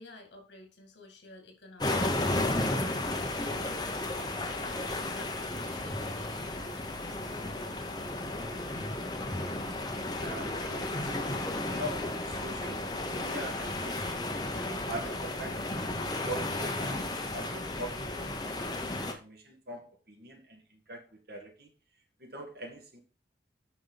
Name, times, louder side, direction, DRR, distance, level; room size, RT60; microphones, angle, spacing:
voice 1, 0.0-7.9, left 2 dB, 75° left, 4 dB, 2.2 m, -52 dB
sound 1, 1.8-19.1, left 2 dB, 20° left, 0.9 m, -33 dB
voice 2, 10.2-11.2 11.6-14.2 14.7-21.0 21.3-21.7 22.2-23.0, right 1 dB, 55° right, 2 dB, 1.9 m, -43 dB
8.4 x 5.6 x 3.9 m, 0.33 s
head